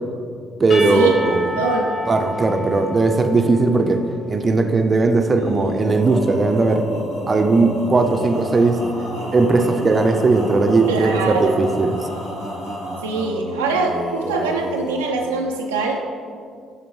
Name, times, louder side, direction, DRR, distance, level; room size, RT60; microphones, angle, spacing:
voice 1, 0.6-1.6 2.1-4.0 4.3-7.0 7.3-8.8 9.3-11.9, right 3 dB, 35° right, 6 dB, 0.6 m, -18 dB
Percussion / Church bell, 0.7-4.6, left 1 dB, 55° left, 1.9 m, -30 dB
voice 2, 1.6-1.9 10.9-11.5 13.0-16.0, right 3 dB, 85° right, 1 dB, 0.5 m, -23 dB
Male singing, 5.3-15.1, equal, 90° left, 1.5 m, -30 dB
12.0 x 4.1 x 3.2 m, 2.2 s
hypercardioid pair, 45°, 0 cm